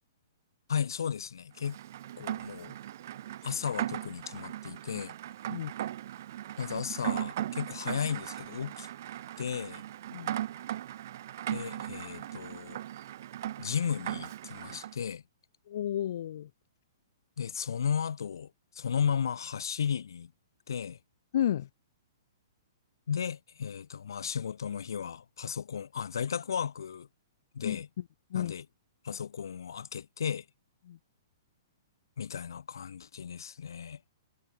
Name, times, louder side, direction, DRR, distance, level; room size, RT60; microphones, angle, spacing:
voice 1, 0.7-1.8 2.2-2.7 3.4-5.1 6.6-8.9 9.4-9.8 11.5-12.8 13.6-15.2 17.4-20.3 20.7-21.0 23.1-27.1 27.5-27.9 28.3-28.6 29.0-30.4 32.2-34.0, left 7 dB, 85° left, 2.6 m, -34 dB
Rain, 1.6-14.9, right 12 dB, 45° right, 0.8 m, -38 dB
voice 2, 15.7-16.5 21.3-21.7 27.6-27.8 28.3-28.5 30.9-31.0, left 11 dB, 55° left, 0.8 m, -31 dB
hypercardioid pair, 170°, 2 cm